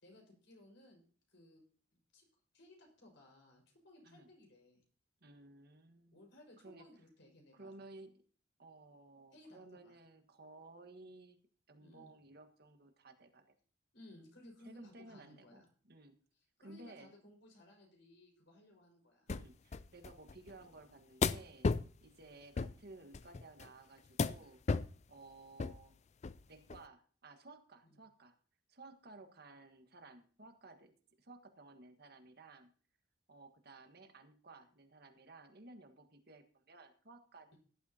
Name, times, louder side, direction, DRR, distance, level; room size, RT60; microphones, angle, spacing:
voice 1, 0.0-1.0 1.3-1.6 1.9-2.2 2.5-4.8 6.1-7.7 9.3-10.0 11.8-12.1 13.9-15.7 16.6-19.3 27.8-28.0, left 1 dB, 75° left, 1 dB, 5.5 m, -60 dB
voice 2, 5.2-6.2 6.6-6.9 7.5-8.1 8.6-11.4 11.7-13.5 14.6-16.2 16.6-17.1 19.3-21.7 22.0-24.6 25.1-25.9 26.5-28.3 28.7-30.9 31.2-32.7 33.3-37.5, right 2 dB, 60° right, 7 dB, 1.6 m, -56 dB
sound 1, 19.3-19.4 19.7-20.5 21.2-21.9 22.6-22.7 23.1-23.7 24.2-24.4 24.7-25.0 25.6-25.8 26.2-26.4 26.7-26.8, left 4 dB, 35° left, 0.4 m, -34 dB
17.0 x 11.5 x 2.9 m, 0.42 s
head